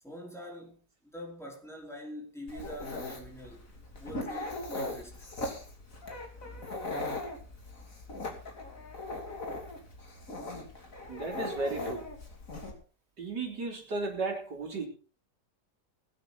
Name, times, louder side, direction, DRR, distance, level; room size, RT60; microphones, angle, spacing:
voice 1, 0.0-3.6 3.9-5.3, equal, ahead, 4.8 m, -45 dB
Dog, 2.5-12.7, left 2 dB, 50° left, 3.4 m, -39 dB
voice 2, 11.1-12.1 13.2-14.9, right 3 dB, 80° right, 4.1 m, -34 dB
20.5 x 8.5 x 4.2 m
omnidirectional pair, 1.8 m